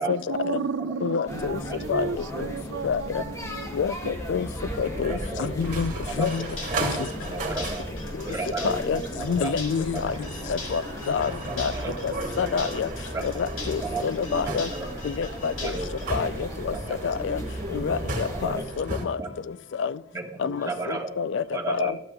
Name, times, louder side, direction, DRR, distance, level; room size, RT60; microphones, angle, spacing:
voice 1, 0.0-3.7 4.0-4.1, right 5 dB, 65° right, 0.5 m, -33 dB
voice 2, 1.0-1.6 1.9-2.1 2.8-3.2 3.7-4.5 4.8-5.9 6.2-6.4 6.8-6.9 8.6-9.0 9.3-10.1 10.5-10.8 11.1-11.3 11.6-11.7 12.0-12.1 12.4-12.9 13.2-14.7 15.0-15.7 16.1-16.7 17.0-17.4 17.7-19.2 19.8-19.9 20.4-21.9, left 6 dB, 65° left, 0.3 m, -27 dB
sound 1, 1.3-18.6, equal, 15° left, 1.1 m, -38 dB
sound 2, 3.5-19.0, right 1 dB, 45° right, 1.8 m, -35 dB
voice 3, 5.1-5.5 6.1-6.4 6.7-7.9 8.2-9.5 9.9-10.2 11.5-11.9 13.1-13.2 13.8-14.1 14.4-14.9 15.6-15.9 16.7-17.0 18.3-18.6 18.9-19.3 20.1-21.1 21.5-22.0, right 3 dB, 15° right, 1.5 m, -34 dB
sound 3, 6.1-16.1, left 3 dB, 90° left, 2.4 m, -41 dB
12.5 x 12.5 x 2.3 m
head